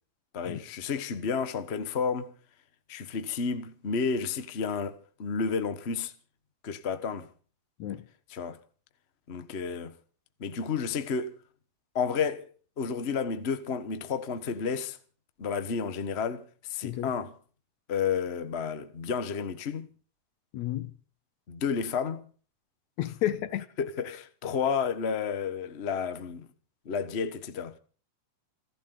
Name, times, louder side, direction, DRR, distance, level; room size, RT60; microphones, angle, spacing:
voice 1, 0.3-2.3 2.9-6.1 6.6-7.3 8.3-8.6 9.3-10.0 10.4-11.3 11.9-12.5 12.8-15.0 15.4-17.3 17.9-19.9 21.5-22.3 23.8-26.5 26.8-27.8, left 6 dB, 50° left, 0.7 m, -31 dB
voice 2, 20.5-20.9 23.0-23.7, left 13 dB, 75° left, 2.4 m, -31 dB
28.5 x 12.0 x 3.9 m
omnidirectional pair, 3.3 m